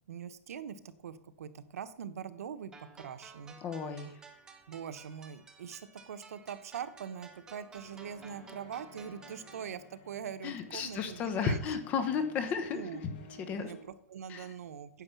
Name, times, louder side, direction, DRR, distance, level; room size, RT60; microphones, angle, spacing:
voice 1, 0.1-3.6 4.7-11.6 11.9-12.0 12.7-13.0 13.5-15.0, right 8 dB, 90° right, 11 dB, 1.1 m, -43 dB
sound 1, 2.7-9.7, right 4 dB, 10° right, 0.9 m, -54 dB
voice 2, 3.6-4.2 10.4-13.7 14.3-14.5, left 6 dB, 20° left, 9 dB, 1.0 m, -34 dB
sound 2, 7.8-13.8, left 2 dB, 45° left, 2.1 m, -55 dB
9.8 x 7.3 x 7.0 m, 0.68 s
supercardioid pair, 175°, 8 cm